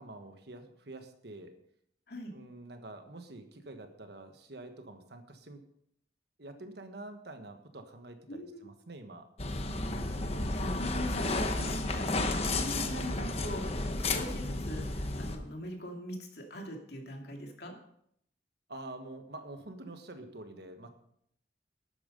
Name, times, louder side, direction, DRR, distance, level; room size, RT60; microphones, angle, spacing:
voice 1, 0.0-1.5 2.3-5.6 6.4-9.3 18.7-20.9, right 2 dB, 60° right, 7 dB, 1.4 m, -47 dB
voice 2, 8.3-8.7 10.5-17.7, equal, 60° left, 2 dB, 2.5 m, -42 dB
sound 1, 9.4-15.4, left 2 dB, 35° left, 1.1 m, -32 dB
12.0 x 9.0 x 5.3 m, 0.71 s
head